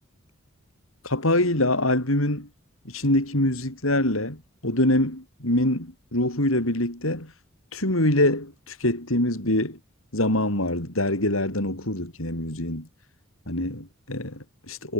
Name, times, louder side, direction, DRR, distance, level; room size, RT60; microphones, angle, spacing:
voice 1, 1.0-2.5 2.9-7.3 7.7-9.8 10.1-12.9 13.5-14.9, left 1 dB, 85° left, 7.5 m, -24 dB
head